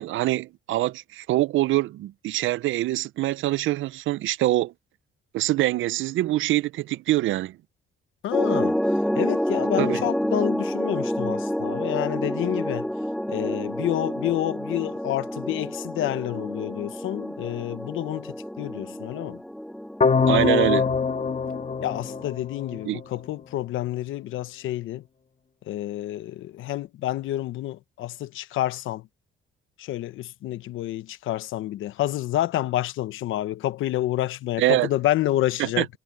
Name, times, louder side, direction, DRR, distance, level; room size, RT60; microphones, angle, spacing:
voice 1, 0.0-4.7 5.3-7.6 9.8-10.0 20.3-20.9 22.9-23.0 34.6-34.9 35.6-35.9, right 16 dB, 80° right, 0.6 m, -24 dB
voice 2, 8.2-12.9 13.3-19.4 21.8-25.0 25.7-29.1 29.8-35.9, left 14 dB, 85° left, 1.0 m, -29 dB
sound 1, 8.3-22.3, equal, ahead, 0.4 m, -29 dB
sound 2, 20.0-23.0, left 5 dB, 35° left, 1.8 m, -23 dB
cardioid pair, 90°, 20 cm